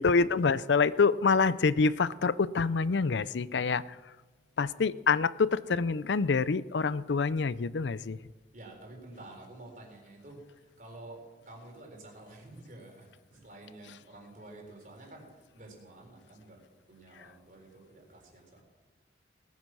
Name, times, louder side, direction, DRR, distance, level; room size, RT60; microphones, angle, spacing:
voice 1, 0.0-3.8 4.6-8.2, left 4 dB, 75° left, 17 dB, 0.5 m, -26 dB
voice 2, 8.5-16.6 16.9-18.6, right 2 dB, 45° right, 1 dB, 4.0 m, -50 dB
19.0 x 9.5 x 6.2 m, 1.3 s
head